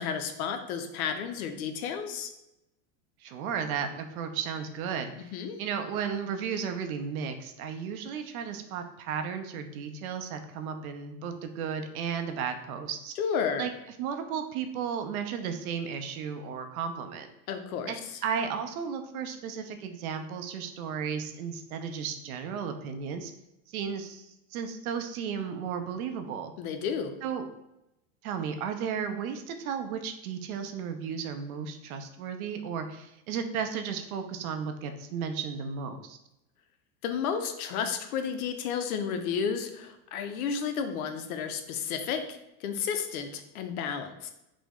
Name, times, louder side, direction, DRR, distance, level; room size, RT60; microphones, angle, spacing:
voice 1, 0.0-2.3 5.2-5.6 13.2-13.7 17.5-17.9 26.6-27.1 37.0-44.3, left 7 dB, 85° left, 7 dB, 0.6 m, -32 dB
voice 2, 3.2-13.1 13.6-13.7 14.0-17.3 17.9-18.0 18.2-23.3 23.7-26.5 27.2-27.4 28.2-36.2, right 7 dB, 90° right, 7 dB, 0.6 m, -34 dB
3.4 x 2.0 x 3.5 m, 0.88 s
supercardioid pair, 155°, 42 cm